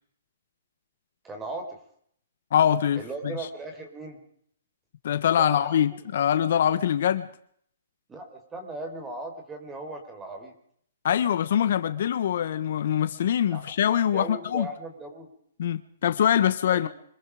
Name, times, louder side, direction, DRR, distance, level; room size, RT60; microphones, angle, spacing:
voice 1, 1.2-1.8 3.0-4.2 5.4-5.8 8.1-10.5 13.5-13.6 14.1-15.3 16.7-16.9, right 2 dB, 10° right, 4.7 m, -37 dB
voice 2, 2.5-3.5 5.0-7.3 11.0-14.7 15.6-16.9, left 9 dB, 55° left, 1.4 m, -24 dB
26.0 x 22.0 x 5.1 m
hypercardioid pair, 160°, 0 cm